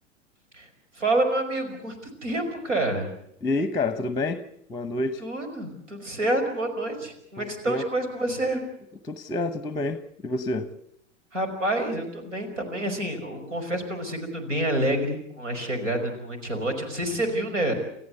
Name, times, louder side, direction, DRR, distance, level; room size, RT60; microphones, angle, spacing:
voice 1, 1.0-1.9 2.2-3.1 5.2-8.6 11.3-17.7, right 1 dB, 80° right, 6 dB, 5.4 m, -28 dB
voice 2, 3.4-4.4 4.7-5.2 7.4-7.8 9.0-10.7, left 2 dB, 10° left, 12 dB, 1.1 m, -28 dB
29.0 x 14.5 x 8.0 m, 0.73 s
figure-of-eight pair, 90°, 36 cm